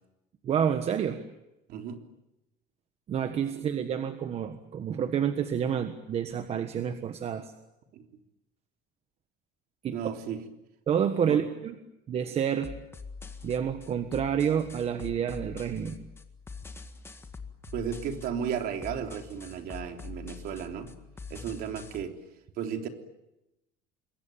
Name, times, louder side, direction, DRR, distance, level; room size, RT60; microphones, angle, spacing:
voice 1, 0.4-1.2 3.1-7.5 9.8-10.0 10.9-11.7 12.1-12.7 13.4-16.0, right 8 dB, 35° right, 8 dB, 1.4 m, -29 dB
voice 2, 1.7-2.0 3.5-3.6 7.9-8.1 9.9-10.4 11.3-11.4 17.7-20.9 21.3-22.2 22.6-22.9, right 8 dB, 50° right, 5 dB, 3.6 m, -34 dB
sound 1, 12.6-22.0, left 4 dB, 10° left, 1.9 m, -44 dB
27.5 x 22.0 x 9.2 m, 0.91 s
cardioid pair, 165°, 19 cm